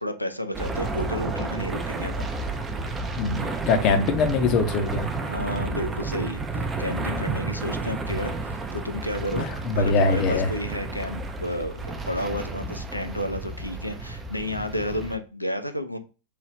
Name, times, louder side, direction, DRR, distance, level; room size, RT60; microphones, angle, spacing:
voice 1, 0.0-2.3 5.2-9.5 9.7-16.0, left 1 dB, 85° left, 0.4 m, -31 dB
sound 1, 0.5-15.2, right 3 dB, 15° right, 0.4 m, -31 dB
voice 2, 3.2-5.1 9.4-10.5, left 4 dB, 40° left, 0.6 m, -23 dB
3.2 x 2.3 x 3.0 m
figure-of-eight pair, 90°, 0 cm